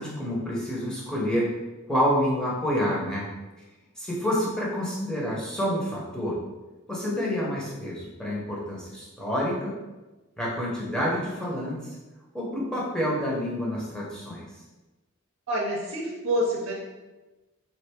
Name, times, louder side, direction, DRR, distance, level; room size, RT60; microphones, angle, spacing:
voice 1, 0.0-1.5 1.9-3.3 4.0-6.4 6.9-9.7 10.4-11.8 12.3-14.4, equal, 5° left, -5 dB, 0.9 m, -28 dB
voice 2, 15.5-16.7, equal, 70° right, -3 dB, 0.7 m, -27 dB
4.1 x 3.6 x 3.5 m, 1.1 s
head